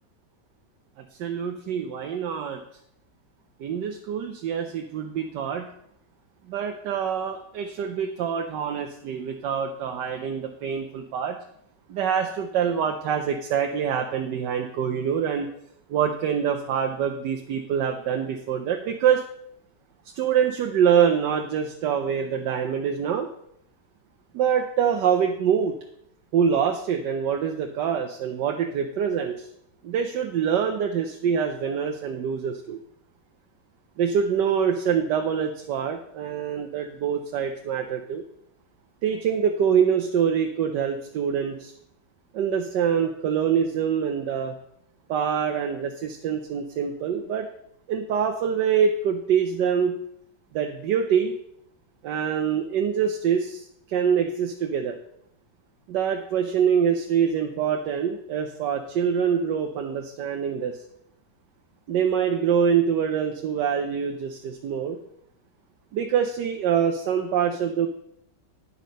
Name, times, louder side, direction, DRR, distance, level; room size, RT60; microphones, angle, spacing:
voice 1, 1.2-2.6 3.6-5.7 6.5-11.4 11.9-15.5 15.9-19.2 20.2-23.3 24.3-25.7 26.3-29.5 29.8-32.8 34.0-38.2 39.0-41.7 42.3-44.5 45.1-47.5 47.9-50.0 50.5-51.3 52.0-55.0 55.9-60.8 61.9-65.0 65.9-67.9, right 7 dB, 85° right, 4 dB, 1.4 m, -25 dB
10.5 x 5.5 x 5.1 m, 0.72 s
omnidirectional pair, 1.8 m